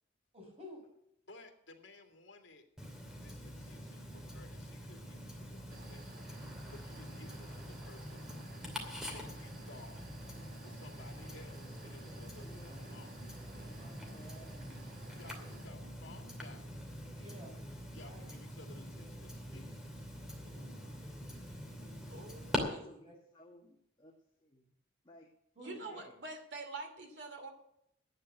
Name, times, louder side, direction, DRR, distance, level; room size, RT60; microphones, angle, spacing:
voice 1, 0.3-0.8 13.5-13.9 17.1-17.5 17.9-18.2 20.3-20.9 22.6-23.1 25.6-25.8, equal, 30° right, 0 dB, 5.9 m, -53 dB
voice 2, 1.3-2.6 3.2-6.3 6.7-8.3 9.0-10.0 10.6-13.3 15.1-16.8 17.9-19.9 25.6-26.2, left 2 dB, 70° left, 4 dB, 2.2 m, -57 dB
Tick-tock, 2.8-22.6, equal, 5° right, 2.6 m, -45 dB
sound 1, 5.7-15.7, right 3 dB, 45° right, 1.3 m, -56 dB
voice 3, 12.4-12.9 13.6-14.8 21.8-24.1 24.4-24.7 25.0-25.3 25.8-26.1, equal, 25° left, -2 dB, 1.8 m, -59 dB
voice 4, 22.1-23.0 25.6-27.5, right 3 dB, 65° right, 5 dB, 2.6 m, -46 dB
11.0 x 8.8 x 7.9 m, 0.76 s
head